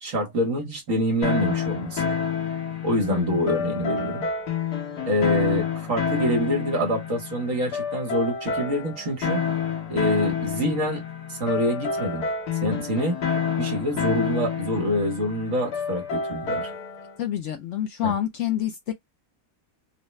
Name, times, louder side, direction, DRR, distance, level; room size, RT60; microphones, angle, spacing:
voice 1, 0.0-2.1 2.8-4.3 5.1-9.4 9.9-11.0 11.3-12.3 12.6-13.2 13.6-16.7 18.0-18.1, equal, 60° right, 1.5 m, -26 dB
sound 1, 1.2-17.1, left 6 dB, 80° left, 1.7 m, -29 dB
voice 2, 3.1-3.5 17.2-18.9, left 11 dB, 65° left, 0.7 m, -27 dB
3.9 x 2.2 x 3.0 m
omnidirectional pair, 1.7 m